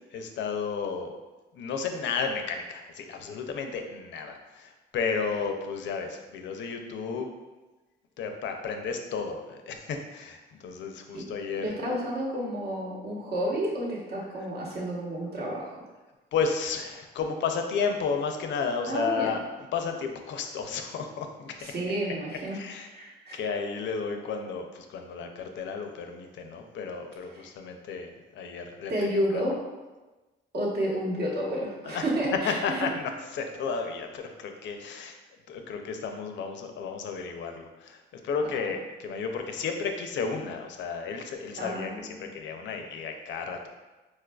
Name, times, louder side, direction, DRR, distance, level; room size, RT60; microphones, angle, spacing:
voice 1, 0.1-1.2 1.5-7.3 8.2-11.6 16.3-19.4 19.7-21.7 22.3-22.9 23.3-29.4 31.9-32.0 32.4-35.2 35.5-41.9 42.2-43.7, left 5 dB, 70° left, 5 dB, 0.4 m, -33 dB
voice 2, 11.6-15.8 18.9-19.4 21.6-22.6 22.9-23.4 27.3-27.5 28.9-29.6 30.5-32.9 41.6-42.2, right 1 dB, 55° right, -4 dB, 1.0 m, -30 dB
4.3 x 2.4 x 2.2 m, 1.2 s
cardioid pair, 90°, 20 cm